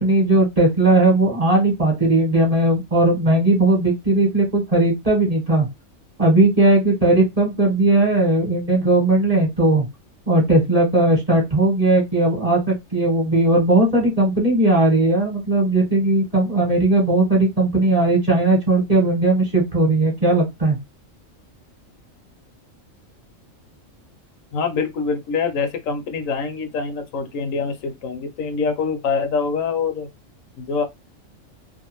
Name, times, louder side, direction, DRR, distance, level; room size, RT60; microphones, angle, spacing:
voice 1, 0.0-5.7 6.2-9.8 10.3-20.8, right 2 dB, 30° right, 1.1 m, -18 dB
voice 2, 24.5-30.1 30.6-30.8, left 5 dB, 80° left, 1.0 m, -25 dB
2.6 x 2.3 x 2.9 m
omnidirectional pair, 1.4 m